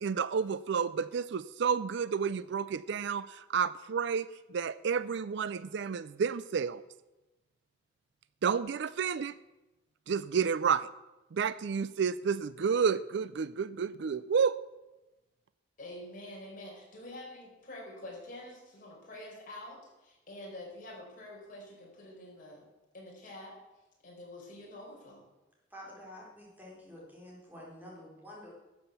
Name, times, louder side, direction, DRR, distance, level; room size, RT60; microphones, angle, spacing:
voice 1, 0.0-6.8 8.4-9.3 10.1-10.9 11.3-14.6, right 6 dB, 65° right, 17 dB, 0.4 m, -30 dB
voice 2, 15.8-22.6 22.9-23.5 24.0-25.3, left 1 dB, 45° left, -3 dB, 4.7 m, -47 dB
voice 3, 25.7-28.5, left 1 dB, 10° right, -4 dB, 3.9 m, -49 dB
12.0 x 7.8 x 7.0 m, 1.0 s
head